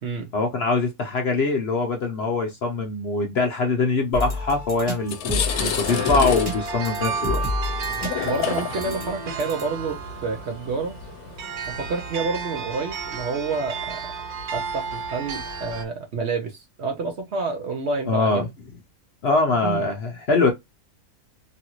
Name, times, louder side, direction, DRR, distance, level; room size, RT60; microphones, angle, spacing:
voice 1, 0.3-7.4 18.1-18.5 19.2-20.5, left 3 dB, 60° left, 0.7 m, -23 dB
sound 1, 4.1-9.9, left 1 dB, 15° right, 1.1 m, -31 dB
sound 2, 4.4-4.6 4.9-12.2, left 9 dB, 80° left, 1.1 m, -30 dB
sound 3, 5.5-15.8, right 5 dB, 80° right, 1.3 m, -33 dB
voice 2, 8.2-11.0 11.7-14.0 14.5-18.4 19.6-19.8, right 4 dB, 60° right, 0.8 m, -29 dB
3.0 x 2.5 x 2.9 m
omnidirectional pair, 1.6 m